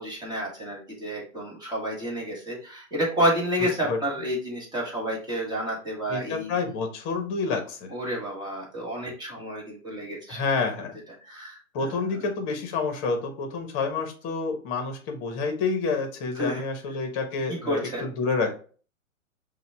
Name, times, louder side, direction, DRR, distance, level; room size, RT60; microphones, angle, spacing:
voice 1, 0.0-6.5 7.9-10.4 11.2-12.0 16.4-16.6 17.6-18.1, equal, 10° right, -4 dB, 1.6 m, -30 dB
voice 2, 3.6-4.0 6.1-7.9 10.3-11.0 11.7-18.5, left 4 dB, 30° left, 5 dB, 1.1 m, -28 dB
5.6 x 2.5 x 3.3 m, 0.39 s
hypercardioid pair, 125°, 42 cm